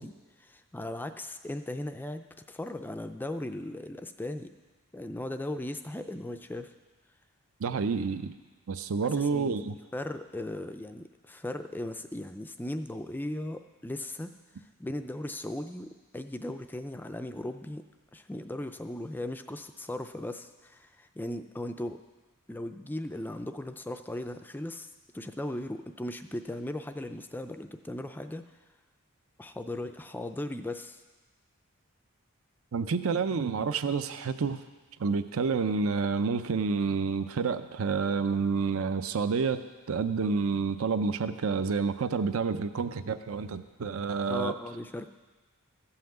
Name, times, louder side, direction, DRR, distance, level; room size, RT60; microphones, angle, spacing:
voice 1, 0.0-4.5 4.9-6.7 9.1-14.3 14.8-17.8 18.1-22.0 22.5-24.9 25.1-28.4 29.4-31.0 44.3-45.1, left 1 dB, 10° left, 8 dB, 0.3 m, -37 dB
voice 2, 7.6-8.3 8.7-9.8 32.7-34.6 35.0-39.6 39.9-44.5, right 5 dB, 70° right, 11 dB, 0.5 m, -29 dB
14.0 x 5.7 x 7.8 m, 1.3 s
head